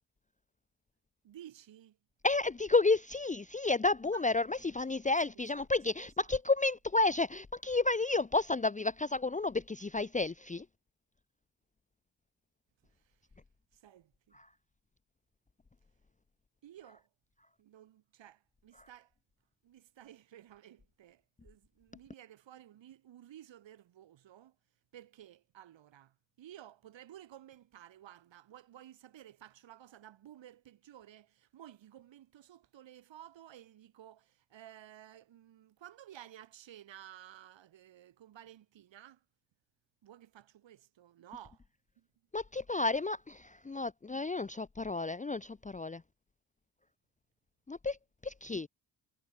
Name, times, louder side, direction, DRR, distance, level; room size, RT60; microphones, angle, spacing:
voice 1, 1.2-2.0 4.1-4.2 4.6-4.7 5.3-5.7 6.2-6.3 12.8-13.2 13.7-14.4 16.6-17.1 17.6-19.1 19.6-24.6 24.9-39.2 40.0-41.6 42.0-42.1, right 11 dB, 80° right, 3.9 m, -54 dB
voice 2, 2.2-10.6 14.4-14.5 42.3-46.0 47.7-48.0 48.2-48.7, left 3 dB, 15° left, 0.8 m, -31 dB
cardioid pair, 60°, 44 cm